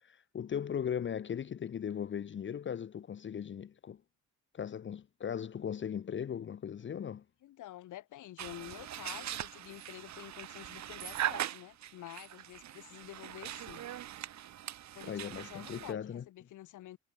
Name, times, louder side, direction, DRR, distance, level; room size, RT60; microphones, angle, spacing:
voice 1, 0.0-4.0 4.5-7.2 15.1-16.2, left 8 dB, 40° left, 0.8 m, -38 dB
voice 2, 7.4-13.9 14.9-17.0, left 14 dB, 80° left, 2.5 m, -49 dB
sound 1, 8.4-15.9, right 11 dB, 65° right, 1.4 m, -41 dB
cardioid pair, 90°, 30 cm